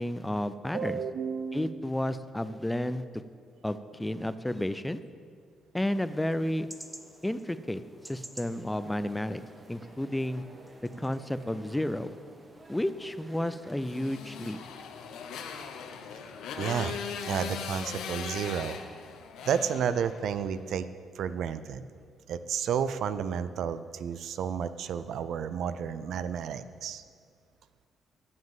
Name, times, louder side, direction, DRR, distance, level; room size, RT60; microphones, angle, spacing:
voice 1, 0.0-1.0 1.5-3.0 3.6-5.0 5.7-6.7 7.2-9.4 9.7-10.4 11.0-12.1 12.7-14.6, left 1 dB, 10° left, 13 dB, 0.5 m, -31 dB
voice 2, 0.7-1.8 16.6-17.0 17.3-18.8 19.5-20.9 21.2-21.8 22.3-27.0, right 7 dB, 70° right, 13 dB, 0.4 m, -31 dB
sound 1, 5.8-15.1, right 1 dB, 10° right, 0.9 m, -53 dB
sound 2, 8.7-14.6, right 2 dB, 35° right, 1.8 m, -54 dB
Motorcycle, 13.8-20.5, left 6 dB, 85° left, 0.8 m, -39 dB
9.5 x 7.3 x 7.3 m, 2.1 s
cardioid pair, 90°, 0 cm